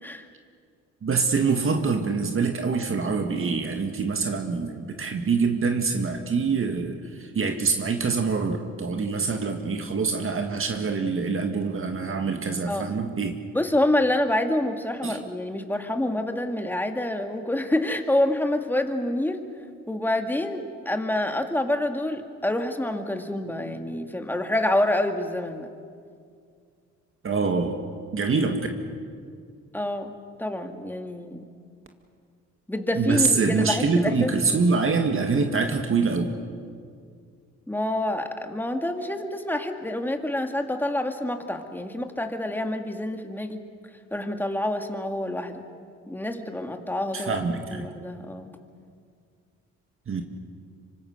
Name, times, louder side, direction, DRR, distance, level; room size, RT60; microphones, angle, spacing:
voice 1, 1.0-13.4 15.0-15.2 27.2-27.8 28.1-28.7 33.0-36.4 47.1-47.9 50.1-50.2, right 4 dB, 45° right, 4 dB, 2.0 m, -25 dB
voice 2, 13.5-19.4 19.9-25.7 29.7-30.1 30.4-31.5 32.7-34.7 37.7-43.6 44.1-45.7 46.1-47.4 47.7-48.5, left 1 dB, 5° left, 5 dB, 2.1 m, -27 dB
25.5 x 25.0 x 6.6 m, 2.2 s
cardioid pair, 90°, 30 cm